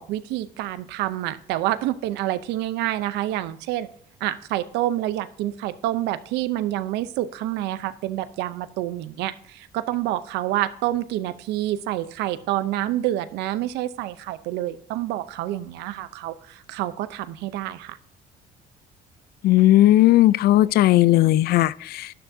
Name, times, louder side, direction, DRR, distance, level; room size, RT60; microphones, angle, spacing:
voice 1, 0.0-3.9 4.2-18.0, right 14 dB, 90° right, 0.6 m, -28 dB
voice 2, 19.4-22.1, left 15 dB, 65° left, 0.4 m, -17 dB
12.0 x 9.8 x 2.7 m
cardioid pair, 110°, 17 cm